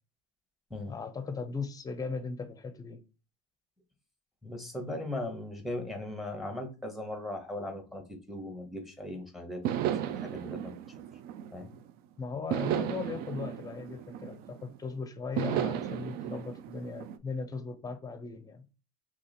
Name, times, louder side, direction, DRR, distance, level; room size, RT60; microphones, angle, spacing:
voice 1, 0.9-3.0 12.2-18.7, left 4 dB, 20° left, 0.6 m, -38 dB
voice 2, 4.4-10.7 11.5-11.7, left 1 dB, ahead, 1.0 m, -38 dB
sound 1, 9.6-11.9 12.5-14.8 15.4-17.2, right 10 dB, 55° right, 0.4 m, -34 dB
2.9 x 2.8 x 4.1 m
supercardioid pair, 110°, 18 cm